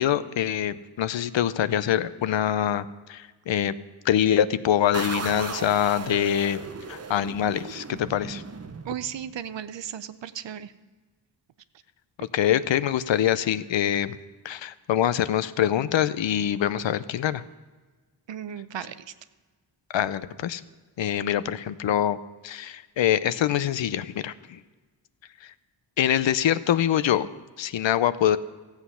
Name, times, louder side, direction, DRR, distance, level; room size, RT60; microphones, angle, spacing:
voice 1, 0.0-3.8 4.1-6.6 6.9-8.4 12.2-14.2 14.4-17.4 19.9-20.6 21.0-22.2 22.4-24.6 26.0-27.3 27.6-28.4, left 10 dB, 90° left, 15 dB, 0.6 m, -24 dB
sound 1, 4.9-9.5, right 5 dB, 35° right, 0.7 m, -36 dB
voice 2, 8.9-10.7 18.3-19.0, right 9 dB, 75° right, 13 dB, 0.7 m, -35 dB
14.5 x 8.1 x 5.6 m, 1.3 s
wide cardioid pair, 90°, 44 cm